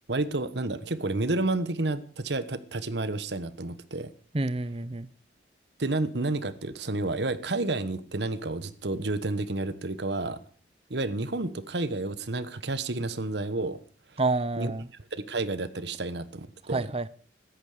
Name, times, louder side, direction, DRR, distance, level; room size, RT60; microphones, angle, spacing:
voice 1, 0.1-4.1 5.8-10.4 10.9-13.8 14.6-14.7 15.1-16.9, right 2 dB, 70° right, 1.2 m, -30 dB
voice 2, 4.3-5.1 14.2-14.9 16.7-17.1, right 3 dB, 30° right, 0.7 m, -28 dB
16.5 x 14.0 x 5.0 m
head